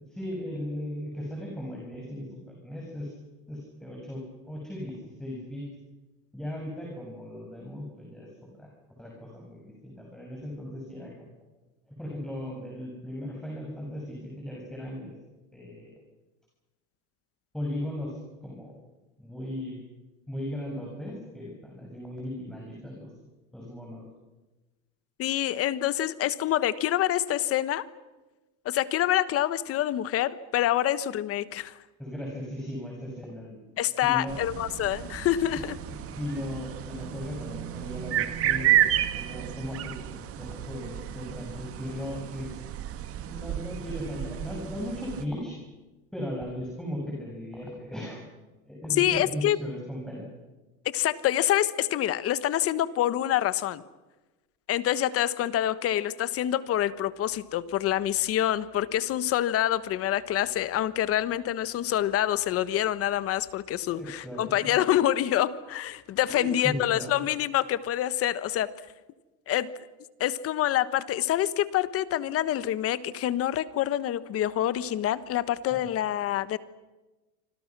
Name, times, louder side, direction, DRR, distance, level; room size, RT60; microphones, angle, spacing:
voice 1, 0.1-3.1 3.5-5.7 6.3-8.3 8.6-8.7 9.0-11.3 11.9-15.2 15.5-15.9 17.5-18.7 19.2-19.8 20.3-23.1 23.5-24.0 32.0-33.6 34.0-34.4 35.9-42.6 43.3-45.5 46.1-48.2 48.7-50.3 63.9-64.8 66.2-67.2 75.7-75.8, equal, ahead, -1 dB, 7.1 m, -37 dB
voice 2, 25.2-27.8 28.6-31.7 33.8-35.7 49.0-49.6 50.8-53.8 54.7-68.7 69.5-69.7 70.2-76.6, left 12 dB, 35° left, 15 dB, 1.3 m, -26 dB
sound 1, 34.3-45.2, right 12 dB, 35° right, 1.9 m, -31 dB
28.0 x 26.0 x 6.2 m, 1.1 s
supercardioid pair, 135°, 38 cm